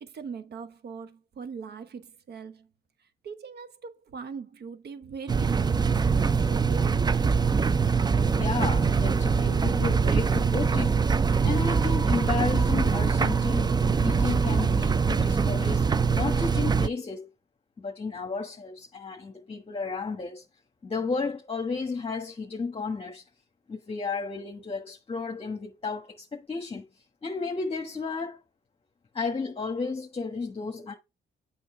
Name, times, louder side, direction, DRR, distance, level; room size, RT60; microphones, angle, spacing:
voice 1, 0.0-2.7 3.2-7.2, right 6 dB, 55° right, 1.1 m, -41 dB
sound 1, 5.3-16.9, right 5 dB, 20° right, 0.4 m, -23 dB
voice 2, 8.3-11.0 11.4-17.3 17.8-20.4 20.8-23.2 23.7-26.8 27.2-28.4 29.1-30.9, left 4 dB, 30° left, 1.3 m, -33 dB
7.9 x 5.6 x 3.2 m
cardioid pair, 90°, 20 cm